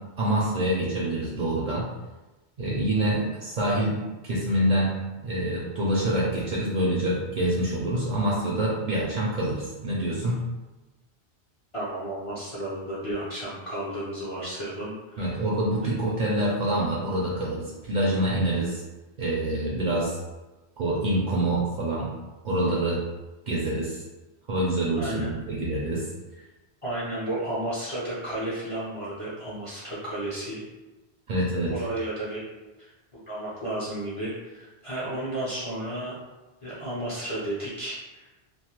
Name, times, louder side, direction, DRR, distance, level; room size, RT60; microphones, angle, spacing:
voice 1, 0.2-1.9 2.6-4.0 4.2-4.9 5.2-10.4 15.2-18.8 19.2-20.2 20.8-22.1 22.4-23.0 23.5-24.0 24.5-26.0 31.3-31.7, right 1 dB, 55° right, -5 dB, 0.5 m, -26 dB
voice 2, 11.7-15.3 25.0-25.3 26.8-30.6 31.7-32.4 32.8-32.9 33.3-36.2 36.6-38.3, right 1 dB, 45° left, -9 dB, 0.5 m, -32 dB
2.3 x 2.0 x 2.8 m, 1.1 s
omnidirectional pair, 1.1 m